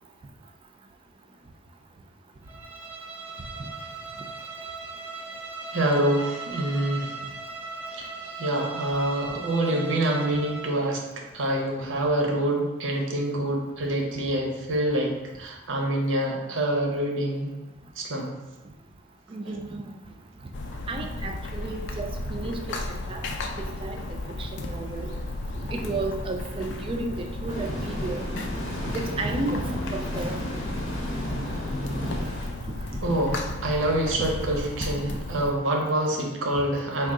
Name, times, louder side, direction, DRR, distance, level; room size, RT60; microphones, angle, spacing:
Bowed string instrument, 2.5-10.8, right 4 dB, 10° right, 0.7 m, -38 dB
voice 1, 5.7-7.2 7.9-17.5 18.0-18.3 33.0-37.1, right 1 dB, 85° right, 1 dB, 0.7 m, -26 dB
voice 2, 19.3-19.8 20.9-22.8 23.1-23.2 23.8-24.0 24.6-25.1 25.7-28.2 29.2-29.6 29.9-30.4 34.2-34.3, right 2 dB, 30° right, 4 dB, 0.3 m, -32 dB
sound 1, 20.5-35.5, left 2 dB, 65° left, 0.4 m, -34 dB
sound 2, 27.5-32.5, equal, 90° left, 0.9 m, -33 dB
3.5 x 2.3 x 3.7 m, 1.0 s
head